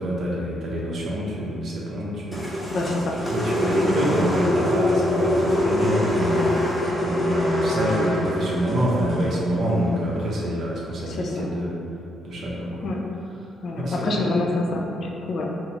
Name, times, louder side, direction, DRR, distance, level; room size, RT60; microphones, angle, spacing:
voice 1, 0.0-2.8 3.2-6.7 6.9-11.8 12.2-12.9 13.8-14.2 14.7-14.8, equal, 65° right, -4 dB, 0.7 m, -26 dB
sound 1, 2.3-10.6, left 1 dB, 5° left, 0.8 m, -25 dB
sound 2, 2.5-9.3, left 1 dB, 40° right, 1.3 m, -41 dB
voice 2, 2.7-3.2 5.5-5.6 11.1-11.5 12.8-13.0 13.6-15.5, left 2 dB, 60° left, 0 dB, 0.4 m, -26 dB
3.9 x 2.0 x 2.8 m, 2.6 s
cardioid pair, 90°, 0 cm